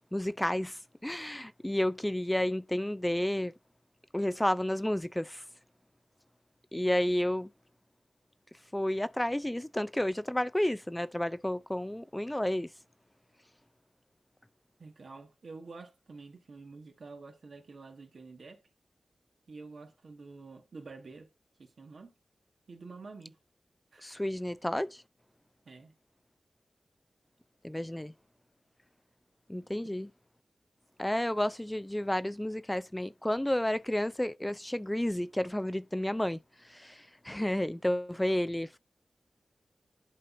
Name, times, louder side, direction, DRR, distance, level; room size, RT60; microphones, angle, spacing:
voice 1, 0.1-3.5 4.1-5.4 6.7-7.5 8.7-12.7 24.0-25.0 27.6-28.1 29.5-30.1 31.0-38.8, left 1 dB, 10° left, 0.4 m, -31 dB
voice 2, 14.8-18.6 19.5-21.3 21.6-22.1 22.7-23.4 23.9-24.2 25.6-26.0, right 3 dB, 70° right, 1.5 m, -48 dB
10.5 x 4.1 x 2.5 m
cardioid pair, 55°, 0 cm